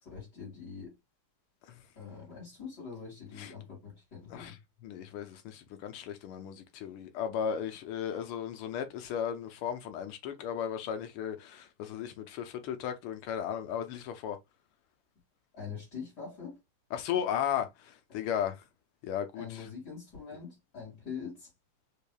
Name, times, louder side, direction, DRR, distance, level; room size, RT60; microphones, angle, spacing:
voice 1, 0.0-0.9 2.0-4.6 15.5-16.6 18.1-18.2 19.3-21.5, left 6 dB, 50° left, 2.8 m, -44 dB
voice 2, 4.8-14.4 16.9-18.6 19.0-19.6, left 8 dB, 85° left, 1.7 m, -35 dB
5.0 x 2.8 x 2.2 m
omnidirectional pair, 2.3 m